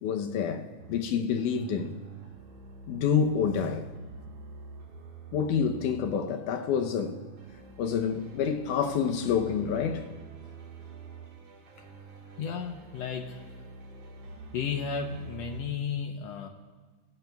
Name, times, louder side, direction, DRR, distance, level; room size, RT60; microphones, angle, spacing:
voice 1, 0.0-2.0 2.9-3.9 5.3-7.2 7.8-10.1, left 7 dB, 90° left, 2.4 m, -28 dB
sound 1, 0.8-1.0 1.4-6.2 6.5-15.7, right 3 dB, 55° right, 2.4 m, -46 dB
voice 2, 12.4-13.4 14.5-16.5, left 6 dB, 75° left, 1.7 m, -33 dB
24.5 x 15.0 x 2.3 m
omnidirectional pair, 3.5 m